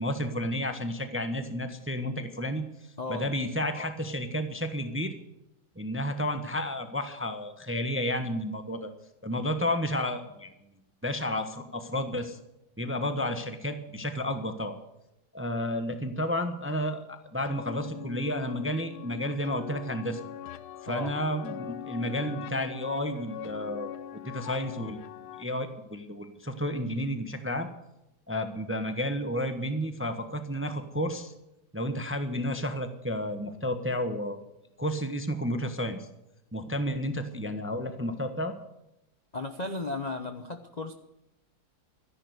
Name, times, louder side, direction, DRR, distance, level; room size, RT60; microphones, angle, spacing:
voice 1, 0.0-2.6 3.1-5.1 5.8-8.9 9.2-10.5 11.0-12.4 12.8-14.8 15.3-20.2 20.8-23.9 24.2-25.0 25.4-27.7 28.3-31.3 31.7-34.4 34.8-36.1 36.5-38.5, equal, 10° right, 8 dB, 0.6 m, -31 dB
voice 2, 3.0-3.3 20.8-21.1 39.3-40.9, left 2 dB, 45° left, 7 dB, 0.5 m, -35 dB
sound 1, 17.5-25.4, left 11 dB, 85° left, 1.6 m, -42 dB
13.0 x 11.0 x 8.0 m, 0.90 s
omnidirectional pair, 2.2 m